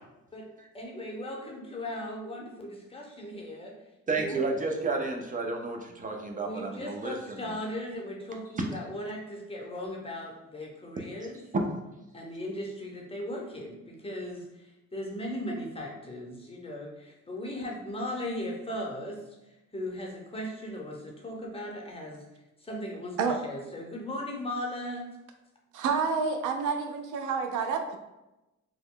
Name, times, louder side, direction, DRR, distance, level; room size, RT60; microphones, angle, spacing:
voice 1, 0.7-3.7 4.1-4.4 6.4-11.4 12.1-19.2 19.7-22.2 22.6-23.2 23.4-25.1, left 1 dB, 20° left, -1 dB, 0.8 m, -37 dB
voice 2, 4.1-7.6 11.5-11.6, right 3 dB, 25° right, 2 dB, 0.5 m, -31 dB
voice 3, 25.7-28.0, right 5 dB, 80° right, 5 dB, 0.5 m, -28 dB
3.0 x 2.2 x 3.7 m, 0.98 s
cardioid pair, 90°, 30 cm